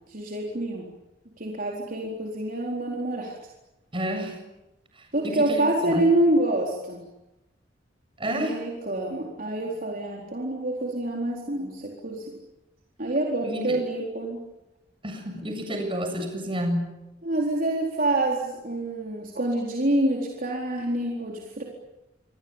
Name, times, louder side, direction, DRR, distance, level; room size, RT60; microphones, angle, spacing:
voice 1, 0.1-0.8 1.4-3.3 5.1-7.0 8.3-12.3 13.0-14.4 17.2-21.6, right 1 dB, 50° right, -1 dB, 4.2 m, -27 dB
voice 2, 3.9-4.4 5.0-6.0 8.2-8.6 13.4-13.8 15.0-16.9, equal, 30° right, 5 dB, 7.6 m, -30 dB
28.0 x 23.5 x 9.0 m, 0.96 s
head